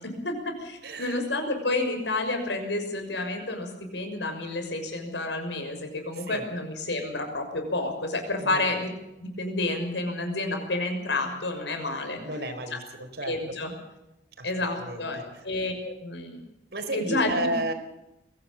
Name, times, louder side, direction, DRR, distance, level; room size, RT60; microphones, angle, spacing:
voice 1, 0.0-8.9 9.2-12.5 13.2-13.7 14.4-15.2 15.4-16.4 16.9-17.5, left 2 dB, 85° left, 5 dB, 6.3 m, -30 dB
voice 2, 0.8-1.2 6.2-6.4 8.4-8.7 12.2-13.4 14.4-14.5 14.8-15.2 16.7-17.7, right 1 dB, 65° right, 6 dB, 4.3 m, -32 dB
22.5 x 17.0 x 7.1 m, 0.91 s
head